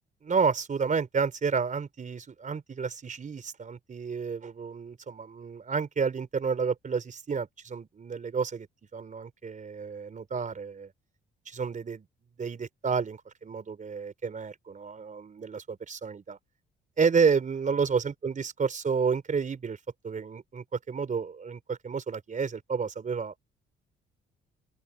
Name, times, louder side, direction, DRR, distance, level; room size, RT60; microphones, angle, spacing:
voice 1, 0.2-8.7 8.9-10.9 11.5-12.1 12.4-16.4 17.0-19.8 20.0-23.3, right 5 dB, 40° right, 4.2 m, -30 dB
open air
cardioid pair, 90°, 20 cm